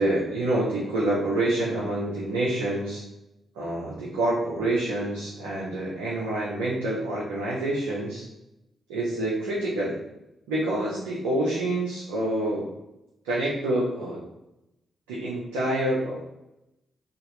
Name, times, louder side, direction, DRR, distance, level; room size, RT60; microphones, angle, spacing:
voice 1, 0.0-3.0 3.5-8.3 8.9-10.0 10.5-12.7 13.2-14.2 15.1-16.2, right 1 dB, 90° right, -6 dB, 0.9 m, -27 dB
4.2 x 3.1 x 3.9 m, 0.88 s
hypercardioid pair, 40°, 0 cm